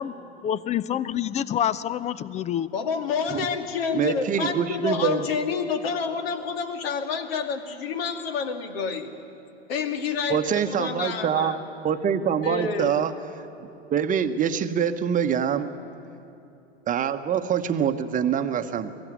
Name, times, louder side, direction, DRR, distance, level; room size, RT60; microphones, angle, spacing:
voice 1, 0.4-2.7, left 10 dB, 20° left, 18 dB, 0.6 m, -27 dB
voice 2, 2.7-9.1 9.7-11.6 12.4-13.0, left 5 dB, 60° left, 6 dB, 2.2 m, -28 dB
voice 3, 3.9-5.3 10.3-11.6 11.8-13.1 13.9-15.7 16.9-19.0, right 8 dB, 25° right, 9 dB, 1.1 m, -25 dB
23.0 x 15.0 x 9.5 m, 2.8 s
figure-of-eight pair, 90°, 34 cm